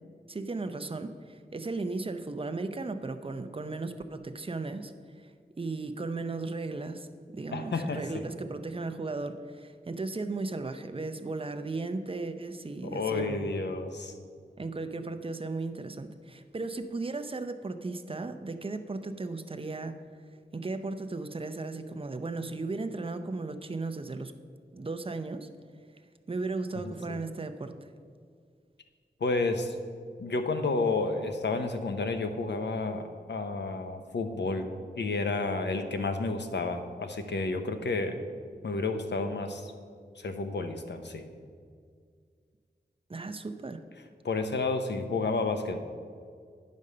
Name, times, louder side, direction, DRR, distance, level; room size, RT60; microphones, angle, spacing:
voice 1, 0.3-4.9 5.2-5.3 5.6-7.1 7.3-13.5 14.6-19.9 20.5-24.4 24.7-25.5 26.3-27.8 43.1-43.8, right 3 dB, 30° right, 8 dB, 0.6 m, -36 dB
voice 2, 7.5-8.2 12.8-14.1 29.2-29.7 30.2-34.7 35.0-38.2 38.6-39.7 40.2-41.3 44.2-45.8, left 3 dB, 80° left, 7 dB, 0.8 m, -31 dB
9.7 x 5.3 x 6.5 m, 2.1 s
wide cardioid pair, 80°, 18 cm